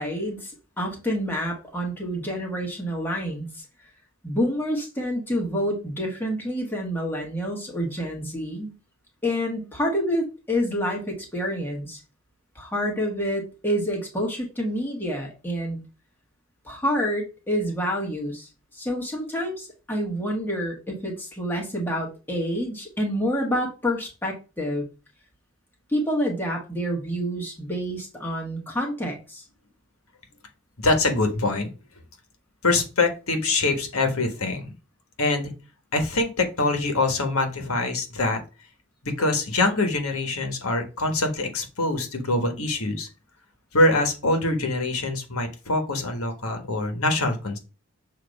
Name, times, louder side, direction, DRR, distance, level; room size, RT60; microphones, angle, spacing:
voice 1, 0.0-3.6 4.2-8.7 9.2-12.0 12.5-15.8 16.6-24.9 25.9-29.4, equal, 10° left, -1 dB, 1.4 m, -28 dB
voice 2, 30.8-31.7 32.6-34.7 35.2-35.5 35.9-38.4 39.0-43.1 43.7-47.6, left 2 dB, 75° left, 5 dB, 1.4 m, -24 dB
7.1 x 3.0 x 5.2 m, 0.32 s
head